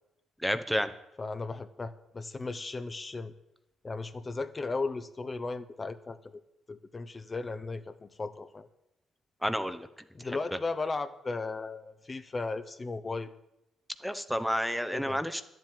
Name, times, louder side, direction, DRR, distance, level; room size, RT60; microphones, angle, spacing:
voice 1, 0.4-0.9 9.4-9.9 14.0-15.4, equal, ahead, 10 dB, 0.8 m, -30 dB
voice 2, 1.2-3.3 3.8-6.4 6.7-8.7 10.1-13.3 14.9-15.2, left 3 dB, 30° left, 10 dB, 0.9 m, -36 dB
11.0 x 7.6 x 9.3 m, 0.85 s
cardioid pair, 90°, 0 cm